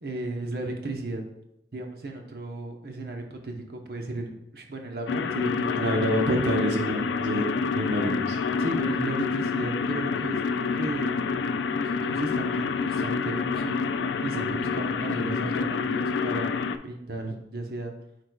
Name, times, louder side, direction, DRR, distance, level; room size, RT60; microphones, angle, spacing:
voice 1, 0.0-1.2 1.7-6.1 6.3-6.5 8.6-11.2 11.7-13.8 14.2-16.5 16.8-17.9, right 2 dB, 60° right, 2 dB, 0.9 m, -35 dB
sound 1, 5.1-16.8, left 5 dB, 90° left, 0.3 m, -28 dB
voice 2, 5.7-7.5 7.7-8.4 14.3-14.6, equal, 90° right, 2 dB, 1.0 m, -27 dB
8.4 x 4.8 x 2.3 m, 0.80 s
head